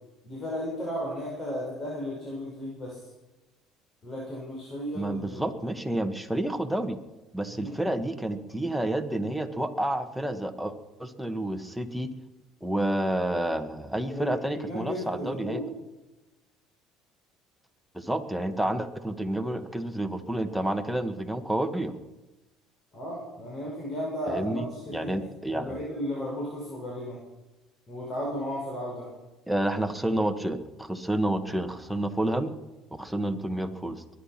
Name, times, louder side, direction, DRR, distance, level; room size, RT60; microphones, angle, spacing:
voice 1, 0.2-3.0 4.0-5.4 7.5-7.7 14.1-15.7 22.9-25.2 25.5-27.2 27.9-29.1, equal, 40° left, -4 dB, 5.7 m, -34 dB
voice 2, 4.9-7.0 7.3-10.7 11.0-12.1 12.6-15.6 17.9-21.9 24.3-25.8 29.5-32.5 32.9-34.0, right 1 dB, ahead, 7 dB, 1.5 m, -29 dB
22.5 x 10.5 x 5.9 m, 1.1 s
supercardioid pair, 95°, 0 cm